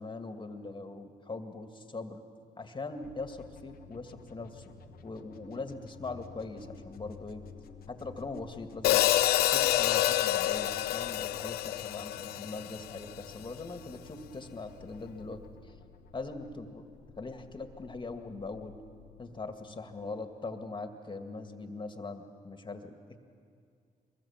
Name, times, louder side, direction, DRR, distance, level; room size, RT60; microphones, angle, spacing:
voice 1, 0.0-2.2 2.6-4.6 5.0-7.4 7.9-9.0 9.5-15.7 16.1-16.8 17.2-18.7 19.2-23.2, left 3 dB, 30° left, 6 dB, 2.2 m, -41 dB
sound 1, 3.0-20.8, left 5 dB, 75° left, 1.3 m, -53 dB
Hi-hat, 8.8-13.1, left 14 dB, 90° left, 0.6 m, -27 dB
23.0 x 21.0 x 7.4 m, 2.2 s
supercardioid pair, 70°, 16 cm